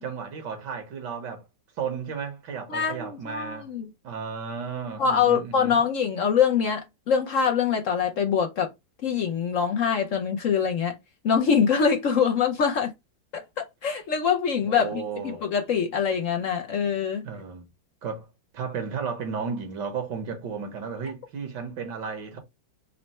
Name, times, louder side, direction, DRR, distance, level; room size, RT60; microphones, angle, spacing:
voice 1, 0.0-1.4 1.8-3.7 4.0-5.8 14.6-15.5 17.2-17.7 18.0-18.3 18.5-22.4, right 6 dB, 65° right, 1.6 m, -34 dB
voice 2, 2.7-3.9 5.0-8.7 9.0-11.0 11.2-12.9 13.3-17.2, left 7 dB, 65° left, 0.8 m, -24 dB
4.2 x 2.1 x 4.1 m
omnidirectional pair, 2.1 m